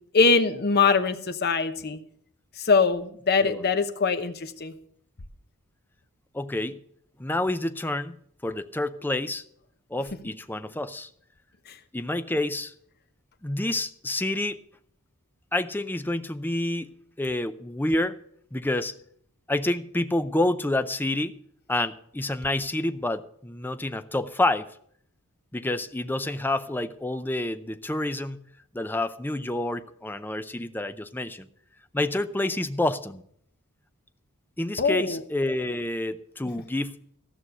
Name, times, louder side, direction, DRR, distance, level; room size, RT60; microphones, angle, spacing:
voice 1, 0.1-2.0 2.6-4.7 34.8-35.2, left 4 dB, 45° left, 9 dB, 0.9 m, -22 dB
voice 2, 6.3-6.8 7.2-8.2 8.4-9.4 9.9-11.1 11.9-12.7 13.4-14.6 15.5-18.2 18.5-19.0 19.5-21.4 21.7-24.7 25.5-28.4 28.7-31.5 31.9-33.2 34.6-37.0, left 1 dB, 10° left, 10 dB, 0.5 m, -28 dB
14.5 x 6.3 x 6.8 m, 0.66 s
head